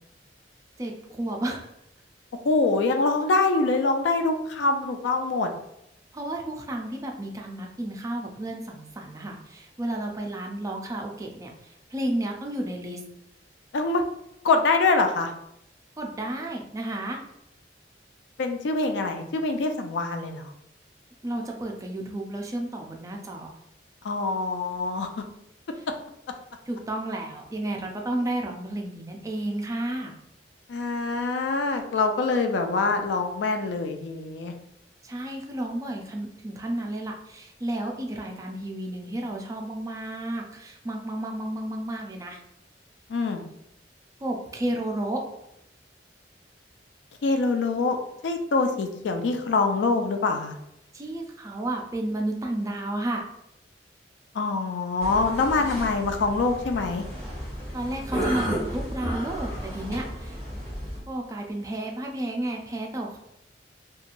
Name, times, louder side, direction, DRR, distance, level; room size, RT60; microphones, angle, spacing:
voice 1, 0.8-1.7 6.1-13.0 16.0-17.2 21.2-23.5 25.8-25.9 26.7-30.1 35.0-42.4 44.2-45.2 50.9-53.2 57.7-60.4 61.1-63.2, right 1 dB, 20° right, 1 dB, 0.4 m, -32 dB
voice 2, 2.4-5.5 13.7-14.0 14.4-15.3 18.4-20.5 24.0-25.1 30.7-34.5 43.1-43.5 47.2-48.0 48.2-50.6 54.3-57.0, left 3 dB, 90° left, 5 dB, 0.4 m, -24 dB
sound 1, 55.0-61.0, equal, 20° left, 1.3 m, -33 dB
2.9 x 2.3 x 2.5 m, 0.79 s
head